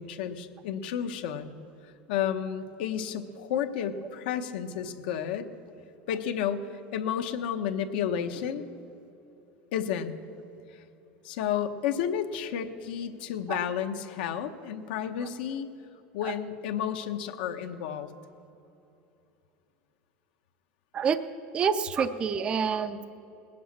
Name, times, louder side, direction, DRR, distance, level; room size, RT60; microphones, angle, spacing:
voice 1, 0.0-1.6 2.1-5.5 6.1-8.7 9.7-10.1 11.2-15.7 16.1-18.1, left 9 dB, 75° left, 6 dB, 1.0 m, -31 dB
voice 2, 21.5-23.1, right 6 dB, 20° right, 10 dB, 0.4 m, -27 dB
19.5 x 7.8 x 8.6 m, 2.9 s
supercardioid pair, 170°, 5 cm